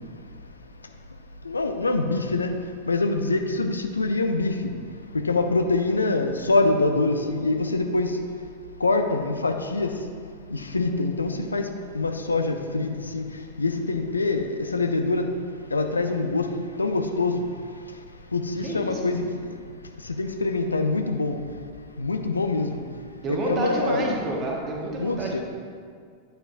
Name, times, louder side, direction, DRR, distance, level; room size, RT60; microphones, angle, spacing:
voice 1, 1.4-2.5 2.9-4.7 5.1-8.2 8.8-10.0 10.5-11.7 11.9-13.2 13.6-15.3 15.7-17.4 18.3-19.3 20.0-21.4 22.0-22.8 23.3-24.1 25.0-25.4, left 3 dB, 80° left, 6 dB, 0.4 m, -24 dB
voice 2, 18.6-19.1 23.2-25.4, right 2 dB, 30° right, -1 dB, 1.3 m, -29 dB
9.1 x 6.6 x 2.6 m, 2.1 s
figure-of-eight pair, 90°, 0 cm